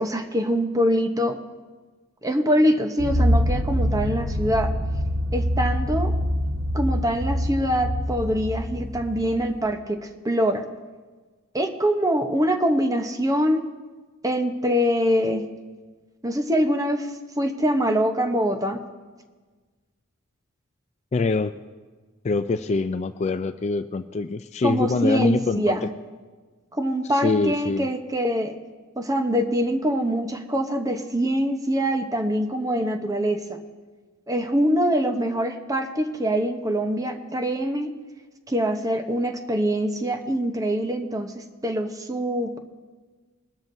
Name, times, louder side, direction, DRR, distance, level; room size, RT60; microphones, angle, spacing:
voice 1, 0.0-1.4 2.2-4.7 5.3-6.1 6.7-10.6 11.5-13.6 14.2-15.4 16.2-17.1 17.4-18.8 24.6-25.9 26.7-28.5 29.0-33.6 34.3-37.9 38.5-42.6, equal, 15° right, 6 dB, 0.8 m, -24 dB
sound 1, 3.0-9.5, equal, 50° right, 1.2 m, -25 dB
voice 2, 21.1-21.5 22.2-25.9 27.1-27.9, left 3 dB, 30° left, 10 dB, 0.3 m, -24 dB
21.5 x 13.0 x 2.7 m, 1.4 s
head